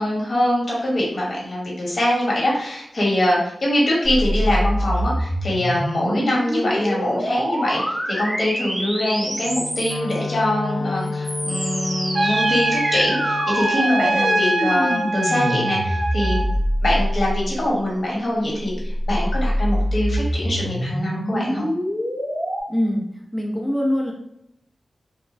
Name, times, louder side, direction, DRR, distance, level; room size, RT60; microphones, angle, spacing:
voice 1, 0.0-16.4 16.8-21.7, left 1 dB, 55° left, -4 dB, 1.0 m, -23 dB
sound 1, 4.0-10.2 11.0-17.6 18.7-22.6, equal, 30° right, 0.9 m, -25 dB
Wind instrument woodwind instrument, 9.4-13.5, left 4 dB, 70° left, 0.3 m, -31 dB
Trumpet, 12.1-16.5, right 1 dB, 50° right, 0.3 m, -23 dB
voice 2, 22.7-23.0 23.3-24.1, equal, 10° left, -1 dB, 0.6 m, -22 dB
3.0 x 2.1 x 2.6 m, 0.77 s
wide cardioid pair, 145°, 0 cm